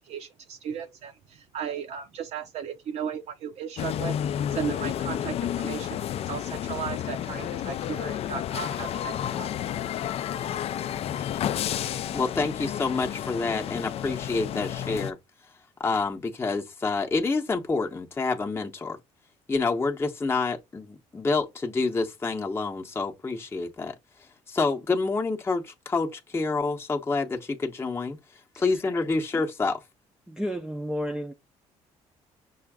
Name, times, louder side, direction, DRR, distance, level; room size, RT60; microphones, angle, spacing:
voice 1, 0.0-6.0 6.3-9.5, right 8 dB, 65° right, 0.6 m, -36 dB
sound 1, 3.8-15.1, left 10 dB, 55° left, 0.4 m, -31 dB
voice 2, 12.1-15.2 15.8-19.0 19.5-23.9 24.2-28.2 28.6-29.8, left 3 dB, 20° left, 0.8 m, -28 dB
voice 3, 30.3-31.3, equal, 5° right, 0.5 m, -31 dB
5.6 x 2.5 x 3.5 m
cardioid pair, 95°, 12 cm